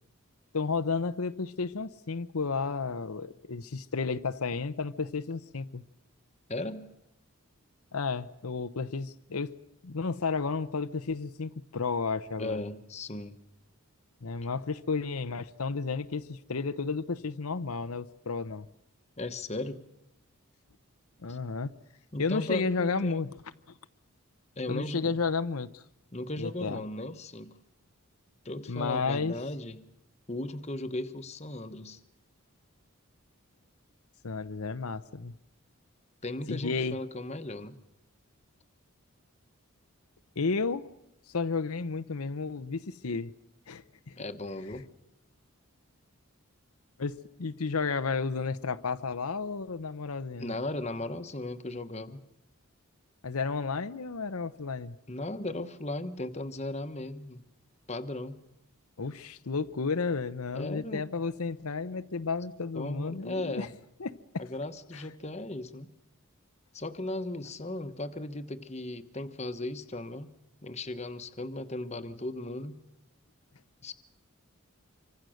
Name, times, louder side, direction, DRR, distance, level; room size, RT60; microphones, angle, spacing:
voice 1, 0.5-5.8 7.9-9.5 9.8-12.6 14.2-18.7 21.2-21.7 22.2-23.3 24.7-25.8 26.4-26.8 28.7-29.3 34.2-35.3 36.5-37.0 40.4-40.9 41.3-43.3 43.7-44.2 47.0-50.5 53.2-55.0 59.0-63.7 64.0-64.4 64.9-65.1, left 4 dB, 85° left, 0.8 m, -32 dB
voice 2, 6.5-6.9 12.4-13.4 19.2-19.8 21.3-21.4 22.1-23.3 24.6-25.2 26.1-27.6 28.4-29.9 30.3-32.0 36.2-37.8 44.2-44.9 50.4-52.2 55.1-57.4 57.9-58.4 60.5-61.1 62.7-63.7 64.4-65.9 66.7-70.3 70.6-72.8 73.8-73.9, left 2 dB, 30° left, 1.2 m, -36 dB
26.0 x 24.5 x 6.5 m
head